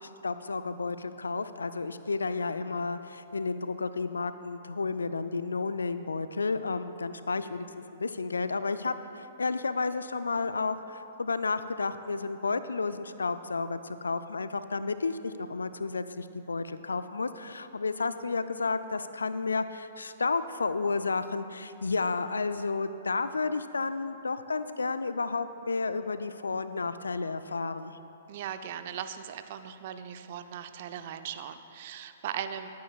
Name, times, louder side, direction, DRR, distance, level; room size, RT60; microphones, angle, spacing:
voice 1, 0.0-7.7 7.9-28.0, left 4 dB, 80° left, 12 dB, 0.4 m, -32 dB
voice 2, 28.3-32.7, right 9 dB, 50° right, 9 dB, 0.6 m, -38 dB
22.0 x 9.3 x 2.4 m, 3.0 s
figure-of-eight pair, 115°, 0 cm